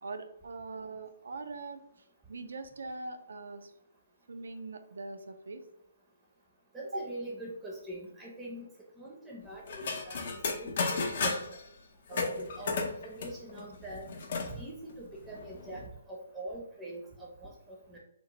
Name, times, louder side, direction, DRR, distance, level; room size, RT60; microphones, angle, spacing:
voice 1, 0.0-1.8 2.3-3.7 4.3-5.6 6.9-7.1, right 3 dB, 75° right, 8 dB, 0.3 m, -41 dB
voice 2, 6.7-8.6 9.0-10.7 11.0-11.6 12.1-14.1 14.5-18.0, right 2 dB, 10° right, -3 dB, 0.5 m, -43 dB
sound 1, 9.7-11.6 12.1-14.5 14.9-15.0 15.2-15.9, left 4 dB, 55° left, 0.5 m, -34 dB
2.8 x 2.0 x 2.8 m, 0.79 s
hypercardioid pair, 145°, 0 cm